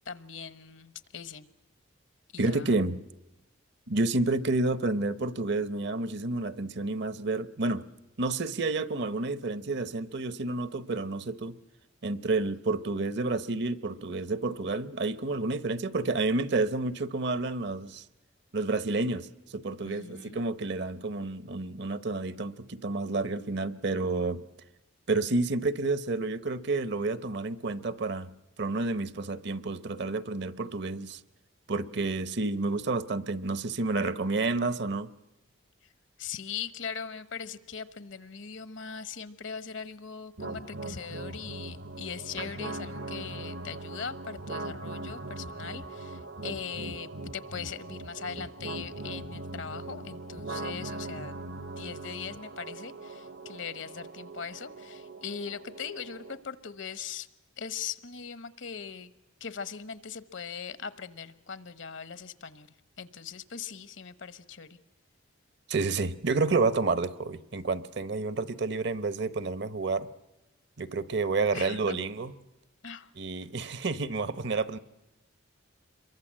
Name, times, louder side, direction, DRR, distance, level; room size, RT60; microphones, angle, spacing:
voice 1, 0.1-1.5 2.3-2.7 19.8-20.4 36.2-51.3 51.6-57.3 57.6-59.1 59.4-64.8 71.5-72.1 72.8-73.1, left 6 dB, 70° left, 14 dB, 1.1 m, -40 dB
voice 2, 2.4-3.0 3.9-7.8 8.2-11.6 12.0-18.0 18.5-19.3 19.5-24.4 25.1-28.3 28.6-31.2 31.7-35.1 65.7-70.1 70.8-72.3 73.2-74.8, right 3 dB, 55° right, 15 dB, 0.9 m, -30 dB
sound 1, 40.4-56.4, right 2 dB, 75° right, 1.2 m, -40 dB
27.0 x 23.0 x 7.5 m, 0.95 s
head